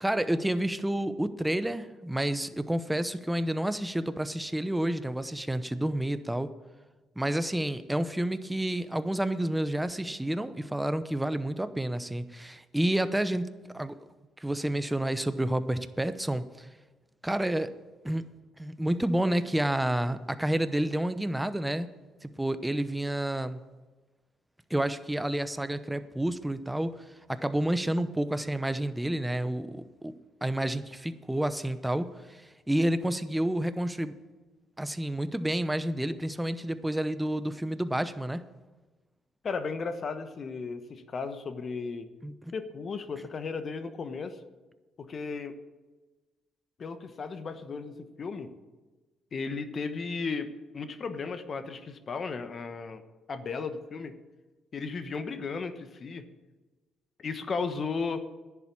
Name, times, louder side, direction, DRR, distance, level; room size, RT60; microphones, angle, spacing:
voice 1, 0.0-6.5 7.2-14.1 14.4-16.7 17.2-17.7 18.0-18.2 18.6-21.9 22.2-23.6 24.7-26.9 27.3-30.1 30.4-34.1 34.8-38.4 42.2-42.5, right 1 dB, 5° right, 12 dB, 0.8 m, -29 dB
voice 2, 39.4-42.1 42.5-44.4 45.0-45.6 46.8-48.5 49.3-53.0 53.3-54.1 54.7-56.2 57.2-58.3, left 4 dB, 45° left, 9 dB, 1.1 m, -35 dB
10.5 x 7.3 x 8.6 m, 1.2 s
cardioid pair, 80°, 0 cm